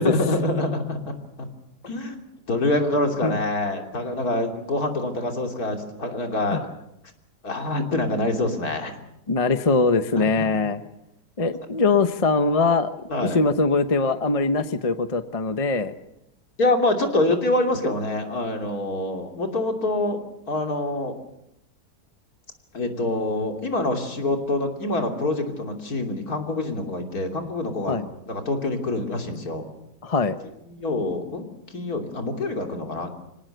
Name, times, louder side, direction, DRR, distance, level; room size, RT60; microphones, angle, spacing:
voice 1, 0.0-1.5 1.9-2.2 2.5-6.7 7.4-9.0 10.2-10.5 13.1-13.4 16.6-20.2 20.5-21.2 22.7-28.0 28.3-29.7 30.7-33.1, left 2 dB, 65° left, 4 dB, 3.5 m, -26 dB
voice 2, 9.3-10.8 11.4-12.9 13.2-15.9 27.9-28.1 30.0-30.4, left 3 dB, 25° left, 10 dB, 0.9 m, -22 dB
26.0 x 18.5 x 8.0 m, 0.82 s
omnidirectional pair, 1.7 m